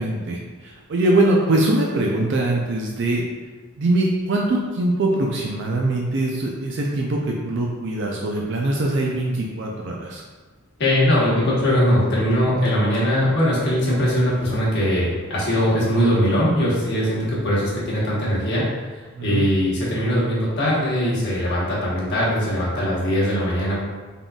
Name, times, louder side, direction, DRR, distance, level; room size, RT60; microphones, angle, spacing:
voice 1, 0.0-3.2 3.8-10.2 19.1-19.4, right 2 dB, 55° right, -1 dB, 0.4 m, -22 dB
voice 2, 10.8-18.6 19.2-23.8, equal, 50° left, -7 dB, 1.2 m, -20 dB
3.7 x 3.7 x 2.3 m, 1.3 s
head